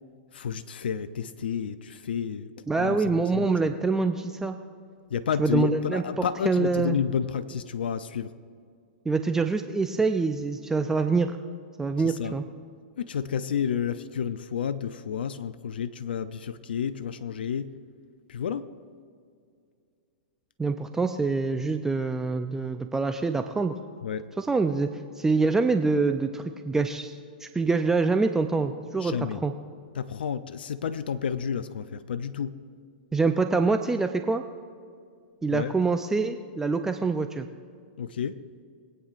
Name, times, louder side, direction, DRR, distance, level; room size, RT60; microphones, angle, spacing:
voice 1, 0.3-3.5 5.1-8.3 12.0-12.3 13.0-17.7 18.3-18.7 24.0-24.3 29.0-29.4 29.9-32.6 35.5-35.7 38.0-38.4, left 7 dB, 80° left, 11 dB, 0.5 m, -31 dB
voice 2, 2.7-4.6 5.4-7.0 9.1-11.4 11.8-12.4 20.6-23.8 24.4-24.9 25.2-29.1 29.4-29.5 33.1-34.4 35.4-37.4, right 4 dB, 10° right, 7 dB, 0.5 m, -25 dB
22.0 x 8.8 x 2.5 m, 2.3 s
hypercardioid pair, 125°, 5 cm